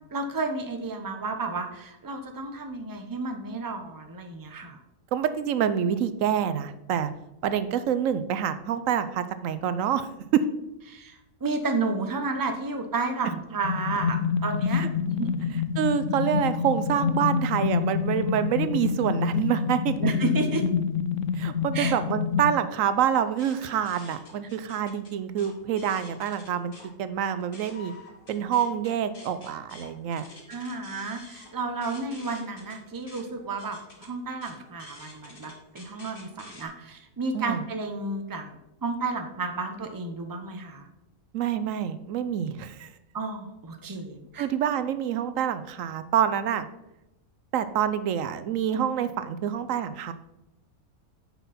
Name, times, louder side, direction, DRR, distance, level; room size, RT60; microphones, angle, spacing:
voice 1, 0.1-4.8 10.9-15.5 20.0-20.7 21.7-22.0 30.5-38.5 38.8-40.9 43.1-44.5, right 3 dB, 20° right, 5 dB, 0.8 m, -32 dB
voice 2, 5.1-7.1 7.4-10.5 14.8-14.9 15.8-19.9 21.4-26.7 27.0-27.9 28.3-30.2 37.3-37.6 41.3-42.9 44.4-46.6 47.5-50.1, right 9 dB, 80° right, 12 dB, 1.0 m, -27 dB
sound 1, 13.6-22.6, left 6 dB, 70° left, 0.9 m, -27 dB
sound 2, 23.3-26.9 27.3-36.6, left 2 dB, 45° left, 1.7 m, -49 dB
9.1 x 6.0 x 4.2 m, 0.92 s
omnidirectional pair, 1.4 m